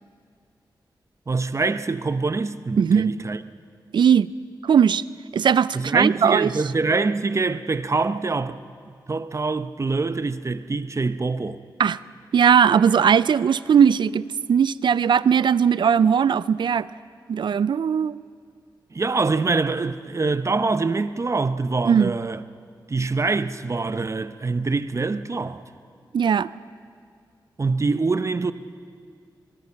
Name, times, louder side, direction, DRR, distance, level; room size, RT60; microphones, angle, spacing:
voice 1, 1.3-3.4 5.7-8.6 8.9-11.6 18.9-22.4 22.9-25.6 27.6-28.5, right 3 dB, 40° right, 0.8 m, -24 dB
voice 2, 2.8-3.1 3.9-4.3 4.6-5.0 5.3-6.5 11.8-12.0 12.3-16.9 17.3-18.2 21.9-22.1 26.1-26.5, right 7 dB, 75° right, 0.5 m, -19 dB
23.0 x 22.5 x 5.9 m
cardioid pair, 75°, 8 cm